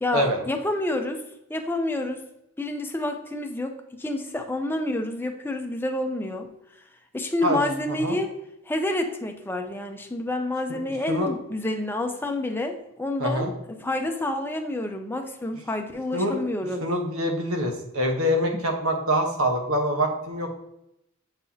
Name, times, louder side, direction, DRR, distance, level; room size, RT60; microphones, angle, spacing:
voice 1, 0.0-1.2 1.5-2.2 2.6-6.5 7.1-8.3 8.7-16.8 18.5-18.6, left 1 dB, 10° left, 4 dB, 0.6 m, -28 dB
voice 2, 13.2-13.5 16.1-16.4 16.8-20.6, equal, 80° right, 3 dB, 1.2 m, -25 dB
7.6 x 4.6 x 2.8 m, 0.83 s
head